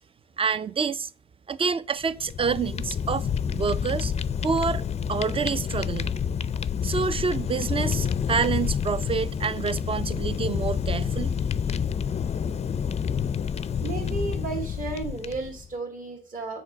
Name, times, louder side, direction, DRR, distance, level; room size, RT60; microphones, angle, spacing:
voice 1, 0.4-1.1 1.5-3.3 3.5-4.1 4.4-4.8 5.1-6.2 6.8-11.3, right 5 dB, 30° right, 0.4 m, -27 dB
Fire, 2.1-15.7, left 7 dB, 35° left, 0.4 m, -28 dB
voice 2, 13.8-16.6, right 3 dB, 45° right, 2.0 m, -33 dB
6.5 x 3.9 x 6.1 m
cardioid pair, 90°, 20 cm